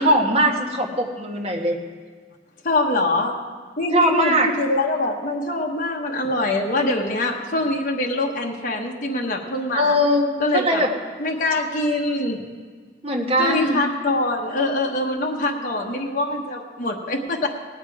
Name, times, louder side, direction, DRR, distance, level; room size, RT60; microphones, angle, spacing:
voice 1, 0.0-1.7 3.9-4.5 9.7-10.9 13.0-13.8, equal, 30° right, 0 dB, 1.5 m, -20 dB
voice 2, 2.6-3.4 3.8-10.0 10.4-10.8 11.2-12.4 13.4-17.5, left 2 dB, 45° left, -1 dB, 1.2 m, -24 dB
18.0 x 9.1 x 4.8 m, 1.6 s
head